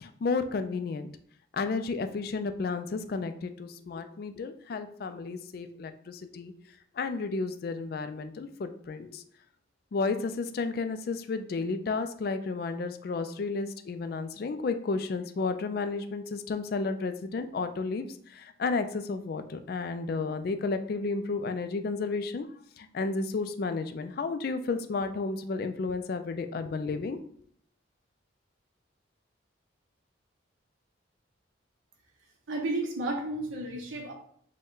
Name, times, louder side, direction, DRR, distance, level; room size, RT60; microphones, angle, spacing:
voice 1, 0.0-1.1 1.5-6.5 7.0-9.2 9.9-22.5 22.8-27.2, left 4 dB, 50° left, 9 dB, 0.3 m, -32 dB
voice 2, 32.5-34.1, right 2 dB, 80° right, 0 dB, 0.8 m, -32 dB
5.2 x 2.2 x 3.7 m, 0.62 s
head